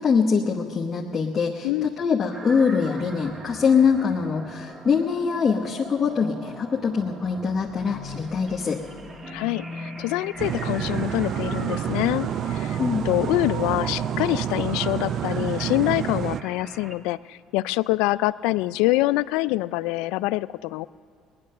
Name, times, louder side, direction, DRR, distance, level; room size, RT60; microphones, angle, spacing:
voice 1, 0.0-8.8 12.8-13.1, left 5 dB, 25° left, -3 dB, 1.0 m, -23 dB
sound 1, 2.3-17.0, right 2 dB, 20° right, 1.0 m, -40 dB
sound 2, 7.4-11.4 12.0-12.4 12.8-13.4 14.0-14.1 14.6-14.7, left 4 dB, 10° left, 1.9 m, -43 dB
voice 2, 9.3-12.8 13.0-20.9, left 18 dB, 85° left, 17 dB, 0.3 m, -25 dB
sound 3, 10.4-16.4, right 10 dB, 50° right, 0.3 m, -28 dB
19.5 x 10.5 x 6.6 m, 2.2 s
cardioid pair, 125°, 0 cm